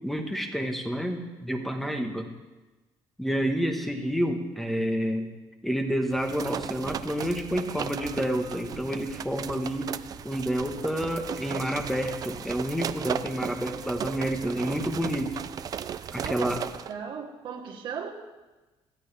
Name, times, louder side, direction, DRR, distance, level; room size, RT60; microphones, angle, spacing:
voice 1, 0.0-2.3 3.2-5.3 5.6-10.0 10.2-15.4 16.1-16.6, equal, ahead, 4 dB, 1.3 m, -29 dB
sound 1, 6.1-16.9, right 8 dB, 40° right, 0.5 m, -36 dB
voice 2, 16.2-16.5 16.9-18.1, right 7 dB, 55° right, 1 dB, 1.5 m, -37 dB
21.5 x 15.5 x 3.5 m, 1.2 s
cardioid pair, 175°, 10 cm